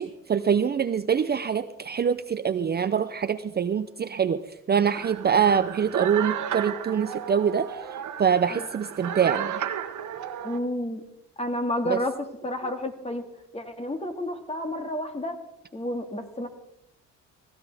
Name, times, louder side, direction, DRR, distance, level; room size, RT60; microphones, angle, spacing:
voice 1, 0.0-7.8 8.2-9.6 11.9-12.0, right 7 dB, 35° right, 12 dB, 0.6 m, -24 dB
sound 1, 4.9-10.6, right 9 dB, 75° right, 1.2 m, -33 dB
voice 2, 10.4-11.0 11.4-12.2 12.4-13.3 13.5-15.4 15.7-16.5, left 1 dB, 20° left, 6 dB, 1.9 m, -30 dB
17.0 x 16.0 x 3.5 m, 0.83 s
cardioid pair, 90°, 30 cm